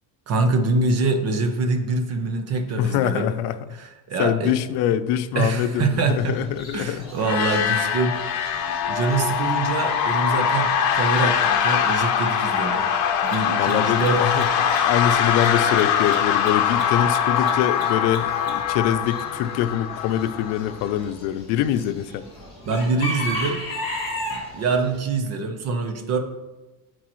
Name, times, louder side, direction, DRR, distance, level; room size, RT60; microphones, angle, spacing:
voice 1, 0.3-3.3 3.8-4.5 5.3-6.4 6.7-8.2 8.9-10.7 10.9-12.9 13.2-14.2 14.7-14.8 22.6-23.6 24.3-26.2, right 3 dB, 40° right, 5 dB, 0.9 m, -24 dB
voice 2, 2.8-3.6 4.2-7.3 13.6-22.3, left 10 dB, 85° left, 11 dB, 0.6 m, -24 dB
Chicken rooster / Bird, 5.8-25.0, left 1 dB, 15° left, 2.5 m, -38 dB
sound 1, 7.2-20.9, left 8 dB, 50° left, 0.8 m, -22 dB
Mechanisms, 10.1-10.2 13.2-18.8, right 4 dB, 80° right, 2.7 m, -41 dB
13.0 x 4.6 x 3.1 m, 1.1 s
cardioid pair, 165°, 38 cm